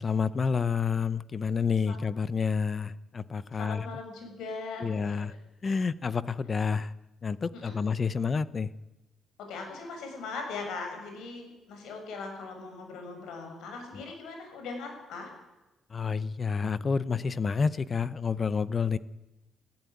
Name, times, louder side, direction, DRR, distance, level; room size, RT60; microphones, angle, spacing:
voice 1, 0.0-3.8 4.8-5.3 5.6-6.9 7.2-8.7 15.9-19.0, left 5 dB, 30° left, 17 dB, 0.8 m, -29 dB
voice 2, 3.6-5.4 7.5-7.8 9.5-15.3, left 4 dB, 85° left, 4 dB, 7.2 m, -40 dB
28.5 x 15.0 x 9.6 m, 1.0 s
cardioid pair, 150°, 0 cm